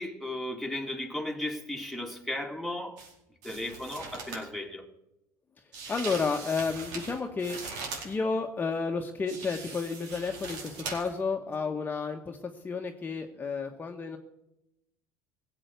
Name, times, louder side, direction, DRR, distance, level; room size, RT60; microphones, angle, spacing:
voice 1, 0.0-3.0 3.4-4.8, left 1 dB, ahead, 2.1 m, -35 dB
sound 1, 3.0-3.1 3.4-4.5 5.7-8.1 9.3-11.2 11.5-11.6, right 4 dB, 75° right, 4.6 m, -40 dB
voice 2, 5.9-7.6 8.0-12.4 12.6-14.2, left 4 dB, 25° left, 1.3 m, -31 dB
16.5 x 8.1 x 8.1 m
supercardioid pair, 105°, 7 cm